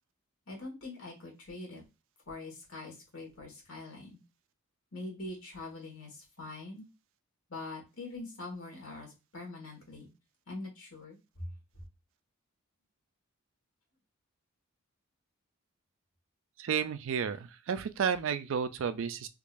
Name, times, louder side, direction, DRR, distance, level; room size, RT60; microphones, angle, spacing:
voice 1, 0.5-1.8 2.3-4.2 4.9-6.8 7.5-10.1 10.5-11.5, left 2 dB, 75° left, 1.6 m, -43 dB
voice 2, 16.6-19.3, right 7 dB, 60° right, 0.4 m, -32 dB
3.7 x 3.0 x 2.5 m
head